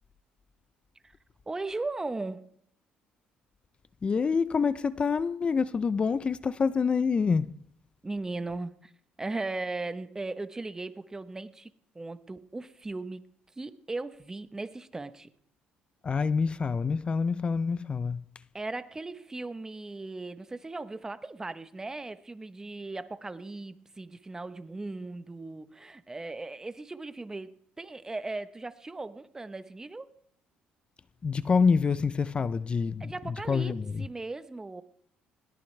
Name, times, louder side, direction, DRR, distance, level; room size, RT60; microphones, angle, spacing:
voice 1, 1.5-2.5 8.0-8.9 9.2-13.3 13.6-15.3 18.5-30.1 33.0-34.8, right 2 dB, 15° right, 1.0 m, -38 dB
voice 2, 4.0-7.6 16.0-18.2 31.2-34.0, left 5 dB, 35° left, 0.6 m, -27 dB
21.0 x 17.5 x 3.4 m
cardioid pair, 90°, 3 cm